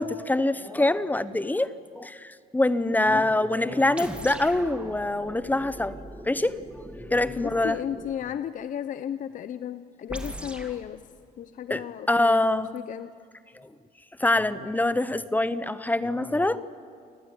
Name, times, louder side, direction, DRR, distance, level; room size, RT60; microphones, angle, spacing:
voice 1, 0.0-5.9 6.3-6.6 6.9-7.8 11.7-11.8 12.1-12.7 13.5-13.7 14.2-16.7, left 2 dB, 10° left, 15 dB, 0.9 m, -25 dB
voice 2, 2.9-3.2 7.4-11.0 11.4-13.1, left 9 dB, 50° left, 13 dB, 0.8 m, -34 dB
sound 1, 4.0-8.3 10.1-10.8, right 1 dB, 5° right, 2.4 m, -40 dB
29.0 x 19.0 x 9.7 m, 2.2 s
cardioid pair, 110°, 17 cm